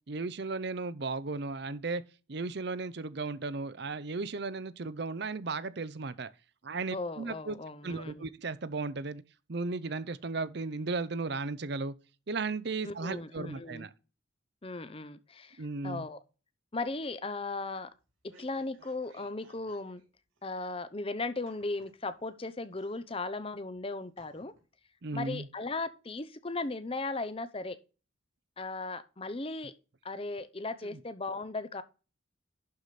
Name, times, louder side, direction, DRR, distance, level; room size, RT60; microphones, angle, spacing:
voice 1, 0.1-2.0 2.3-6.3 6.6-7.6 7.8-9.2 9.5-11.9 12.3-13.9 15.6-16.0 25.0-25.5 30.8-31.0, right 3 dB, 55° right, 0.6 m, -35 dB
voice 2, 6.9-8.3 12.8-13.8 14.6-16.2 16.7-17.9 18.2-20.0 20.4-24.5 25.1-27.8 28.6-29.7 30.0-31.8, left 3 dB, 25° left, 0.7 m, -37 dB
sound 1, 17.9-20.0 20.4-20.5 21.4-22.4 22.7-23.4 23.7-23.8 24.2-24.6 25.0-25.1, right 2 dB, 85° right, 3.0 m, -62 dB
11.5 x 4.9 x 4.1 m
head